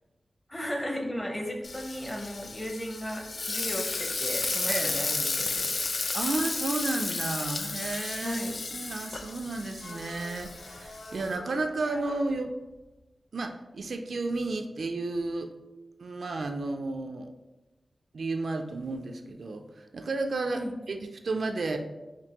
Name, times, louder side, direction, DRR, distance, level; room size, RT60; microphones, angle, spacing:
voice 1, 0.5-5.7 8.2-8.6 20.5-20.7, equal, 15° left, 2 dB, 0.6 m, -35 dB
Frying (food), 1.6-11.4, left 3 dB, 60° left, 0.3 m, -33 dB
voice 2, 6.1-8.4 8.7-12.6 13.3-15.5 16.0-17.3 18.1-21.0 21.2-21.8, right 3 dB, 70° right, 5 dB, 0.3 m, -32 dB
sound 1, 8.7-13.1, left 1 dB, 80° left, 0.7 m, -47 dB
5.1 x 2.6 x 2.9 m, 1.1 s
wide cardioid pair, 105°, 0 cm